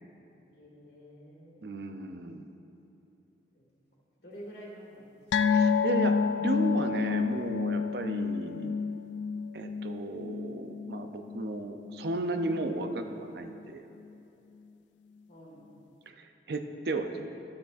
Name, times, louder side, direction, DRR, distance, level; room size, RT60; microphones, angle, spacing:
voice 1, 0.5-1.8 3.5-3.7 4.2-5.1 5.4-5.8 15.3-15.7, equal, 60° left, -4 dB, 1.9 m, -49 dB
voice 2, 1.6-2.5 5.5-8.8 9.5-13.9 16.1-17.3, right 2 dB, 60° right, 6 dB, 0.5 m, -34 dB
sound 1, 5.3-12.1 12.4-12.6 13.0-13.1, left 5 dB, 80° left, 0.3 m, -29 dB
12.0 x 9.4 x 2.5 m, 2.9 s
head